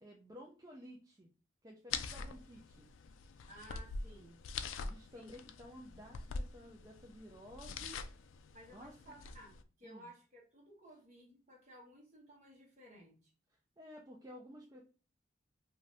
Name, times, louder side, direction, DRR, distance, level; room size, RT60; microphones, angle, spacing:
voice 1, 0.0-1.3 1.6-2.9 4.8-8.0 8.7-8.9 9.8-10.1 13.8-14.8, equal, 20° right, 0 dB, 0.4 m, -53 dB
sound 1, 1.9-9.6, left 5 dB, 85° left, 0.3 m, -45 dB
voice 2, 3.5-4.4 5.1-5.3 8.5-13.3, equal, 40° right, -1 dB, 1.2 m, -57 dB
2.6 x 2.6 x 3.2 m, 0.37 s
head